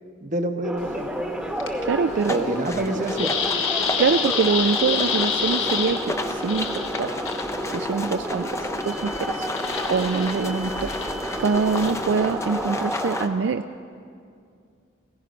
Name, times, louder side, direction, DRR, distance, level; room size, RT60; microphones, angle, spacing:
voice 1, 0.2-1.1 2.3-3.3, right 1 dB, 40° right, 7 dB, 0.9 m, -27 dB
sound 1, 0.6-13.3, equal, 5° right, 1.0 m, -30 dB
sound 2, 0.8-12.8, left 6 dB, 85° left, 1.5 m, -30 dB
voice 2, 1.8-2.5 4.0-7.1 7.6-8.5 8.9-9.5 9.9-10.9 11.4-13.6, right 5 dB, 70° right, 9 dB, 0.4 m, -24 dB
sound 3, 2.2-13.3, left 2 dB, 15° left, 0.5 m, -34 dB
17.0 x 16.0 x 5.2 m, 2.3 s
head